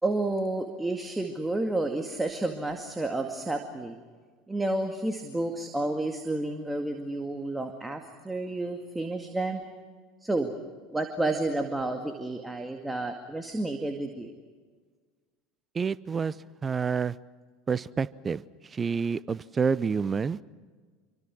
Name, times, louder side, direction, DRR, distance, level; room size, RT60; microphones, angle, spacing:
voice 1, 0.0-4.0 4.5-9.6 10.2-10.5 10.9-14.3, right 2 dB, 10° right, 4 dB, 2.1 m, -30 dB
voice 2, 15.7-16.4 16.6-17.2 17.7-20.4, right 5 dB, 25° right, 19 dB, 0.8 m, -28 dB
27.0 x 24.5 x 6.2 m, 1.5 s
figure-of-eight pair, 75°, 0 cm